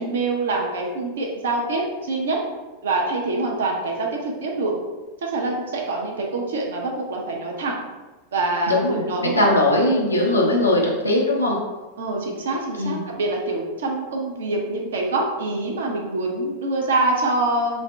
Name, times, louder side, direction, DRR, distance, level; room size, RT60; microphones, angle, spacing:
voice 1, 0.0-2.4 2.8-4.7 5.2-7.8 8.3-9.3 10.5-10.8 12.0-17.8, right 2 dB, 65° right, 0 dB, 0.5 m, -25 dB
voice 2, 8.7-9.0 9.3-11.6 12.8-13.0, left 1 dB, 80° left, -2 dB, 0.6 m, -19 dB
2.5 x 2.1 x 3.2 m, 1.2 s
figure-of-eight pair, 90°, 0 cm